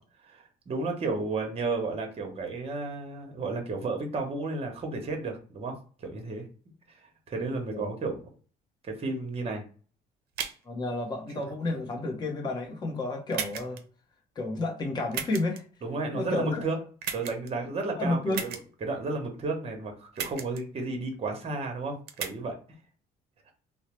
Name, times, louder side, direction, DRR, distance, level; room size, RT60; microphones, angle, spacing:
voice 1, 0.3-6.5 6.9-7.0 7.3-8.2 8.9-9.6 15.8-16.8 17.1-22.6, right 3 dB, 35° right, 3 dB, 0.9 m, -33 dB
sound 1, 10.3-10.6 11.3-11.9 12.6-12.7 13.3-13.8 15.1-15.6 17.0-17.5 18.3-18.6 20.2-20.6 20.9-21.0 22.1-22.3, right 8 dB, 70° right, 0.5 m, -35 dB
voice 2, 10.6-13.8 14.4-15.6 16.1-16.7 18.0-18.5, left 2 dB, 25° left, 1 dB, 0.7 m, -31 dB
2.7 x 2.0 x 3.0 m, 0.40 s
cardioid pair, 110°, 17 cm